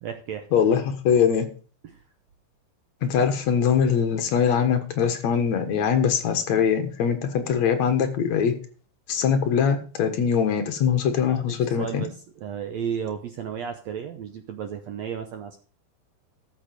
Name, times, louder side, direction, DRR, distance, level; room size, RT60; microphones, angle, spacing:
voice 1, 0.0-0.5 1.8-2.0 11.3-15.6, right 8 dB, 75° right, 7 dB, 1.5 m, -33 dB
voice 2, 0.5-1.5 3.0-8.5 9.1-12.0, left 7 dB, 60° left, 8 dB, 2.3 m, -22 dB
13.5 x 6.7 x 5.2 m, 0.39 s
omnidirectional pair, 4.2 m